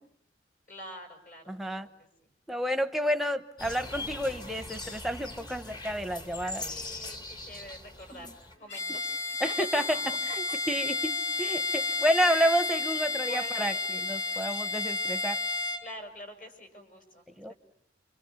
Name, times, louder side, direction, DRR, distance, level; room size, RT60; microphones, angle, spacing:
voice 1, 0.7-2.1 6.6-8.3 8.6-10.2 10.5-10.6 13.1-14.0 15.8-17.5, equal, 50° left, 5 dB, 6.3 m, -46 dB
voice 2, 1.5-1.9 2.5-6.6 8.1-8.3 9.4-9.8 10.3-15.4 17.4-17.5, equal, ahead, 10 dB, 1.0 m, -30 dB
sound 1, 3.6-8.6, left 2 dB, 25° left, 1.4 m, -41 dB
Bowed string instrument, 8.7-15.9, left 3 dB, 80° left, 2.7 m, -31 dB
28.5 x 26.0 x 7.1 m, 0.70 s
head